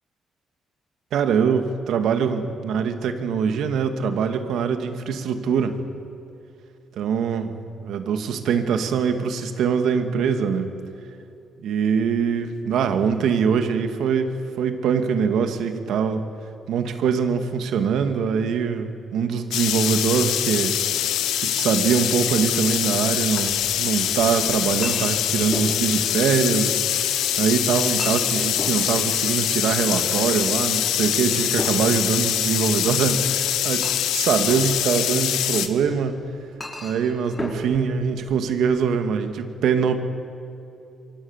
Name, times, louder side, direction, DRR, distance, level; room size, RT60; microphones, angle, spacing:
voice 1, 1.1-5.8 6.9-7.4 7.9-10.7 11.6-16.2 16.7-20.7 21.4-33.8 34.1-36.2 36.8-40.0, right 6 dB, 75° right, 7 dB, 2.3 m, -23 dB
sound 1, 19.5-35.7, left 11 dB, 85° left, 1.5 m, -24 dB
Chink clink, 23.4-38.9, left 1 dB, 20° left, 5.3 m, -38 dB
27.5 x 24.0 x 7.4 m, 2.7 s
cardioid pair, 90°, 0 cm